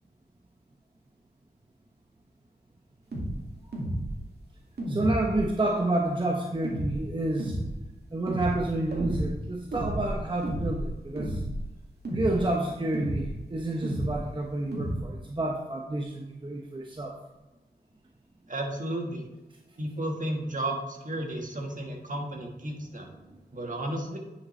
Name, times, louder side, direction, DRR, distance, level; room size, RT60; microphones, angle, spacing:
sound 1, 3.1-3.3 3.7-4.1 4.8-5.5 6.6-7.0 7.4-7.7 8.3-8.6 8.9-9.3 9.7-10.2 10.4-10.9 11.2-11.6 12.0-12.4 12.9-13.3 13.8-14.2 14.7-15.0, right 1 dB, 65° right, 2.1 m, -31 dB
voice 1, 4.9-7.6 8.1-11.4 12.1-17.2 23.2-23.4, right 2 dB, 25° right, 0 dB, 0.9 m, -29 dB
voice 2, 18.5-19.3 19.8-23.1 23.5-24.2, right 1 dB, 45° right, 2 dB, 1.5 m, -33 dB
9.5 x 5.6 x 3.2 m, 1.1 s
wide cardioid pair, 55°, 18 cm